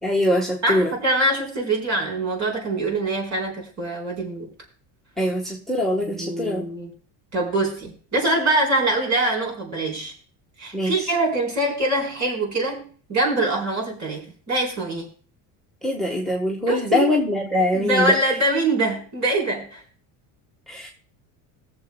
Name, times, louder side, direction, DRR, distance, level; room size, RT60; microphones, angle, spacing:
voice 1, 0.0-0.9 5.2-6.7 10.7-11.1 15.8-18.2 20.7-20.9, left 1 dB, ahead, 0 dB, 1.4 m, -23 dB
voice 2, 0.6-4.5 6.0-6.9 7.3-10.1 10.6-15.1 16.7-17.1 17.7-19.8, right 2 dB, 40° right, -2 dB, 4.4 m, -24 dB
21.0 x 7.3 x 2.3 m, 0.41 s
cardioid pair, 130°, 44 cm